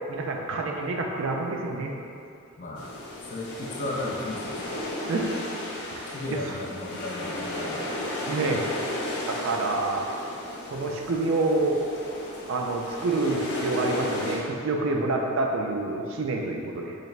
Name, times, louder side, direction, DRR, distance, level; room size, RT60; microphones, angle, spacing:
voice 1, 0.1-2.0 5.1-5.4 5.9-6.4 8.3-8.7 9.3-10.1 10.6-11.8 12.5-16.9, right 2 dB, 60° right, 1 dB, 0.3 m, -27 dB
voice 2, 2.6-2.9 3.3-4.8 6.1-8.0, left 2 dB, 35° left, -2 dB, 0.4 m, -35 dB
sound 1, 2.8-14.4, left 1 dB, 80° left, 0.7 m, -34 dB
4.0 x 3.2 x 2.3 m, 2.5 s
head